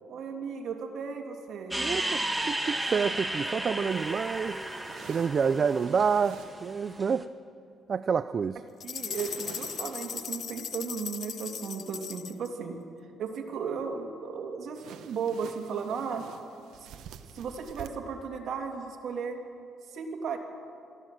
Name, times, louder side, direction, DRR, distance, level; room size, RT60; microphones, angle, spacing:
voice 1, 0.1-1.8 8.8-12.8 13.2-16.3 16.8-16.9 17.3-19.4 19.9-20.4, right 6 dB, 60° right, 2 dB, 2.8 m, -35 dB
sound 1, 1.7-7.1, right 1 dB, 5° right, 1.3 m, -33 dB
voice 2, 1.8-4.6 5.1-7.3 7.9-8.6, right 6 dB, 40° right, 12 dB, 0.4 m, -28 dB
sound 2, 3.9-7.0 8.9-10.4 14.7-17.9, right 8 dB, 75° right, 1.1 m, -49 dB
sound 3, 8.8-12.5, left 8 dB, 50° left, 0.6 m, -38 dB
22.5 x 15.0 x 7.8 m, 2.4 s
cardioid pair, 110°, 0 cm